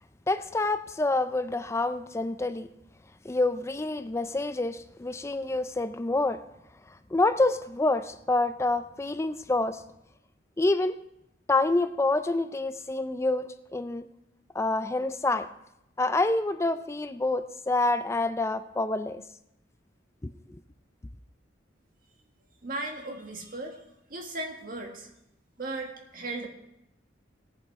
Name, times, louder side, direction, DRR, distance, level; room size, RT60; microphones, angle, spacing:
voice 1, 0.3-2.7 3.2-6.4 7.1-9.8 10.6-11.0 11.5-14.1 14.5-15.5 16.0-19.2 20.5-20.6, left 2 dB, 15° left, 11 dB, 0.4 m, -27 dB
voice 2, 22.6-23.8 24.1-25.1 25.6-26.5, right 2 dB, 45° right, 2 dB, 1.7 m, -36 dB
18.0 x 7.3 x 4.7 m, 0.82 s
head